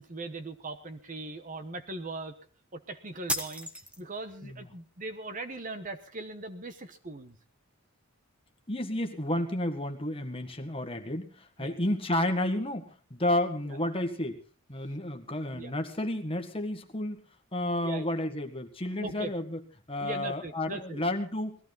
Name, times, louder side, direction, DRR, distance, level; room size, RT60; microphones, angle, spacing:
voice 1, 0.0-2.3 2.7-3.7 4.0-7.4 11.6-11.8 15.5-15.7 17.8-18.1 19.0-19.3 20.0-21.0, right 2 dB, 40° right, 10 dB, 1.1 m, -39 dB
sound 1, 3.3-4.3, equal, 5° right, 1.3 m, -34 dB
voice 2, 8.7-14.4 14.7-17.2 17.5-19.6 19.9-21.6, left 1 dB, 25° left, 5 dB, 1.7 m, -31 dB
20.0 x 14.5 x 4.0 m, 0.38 s
head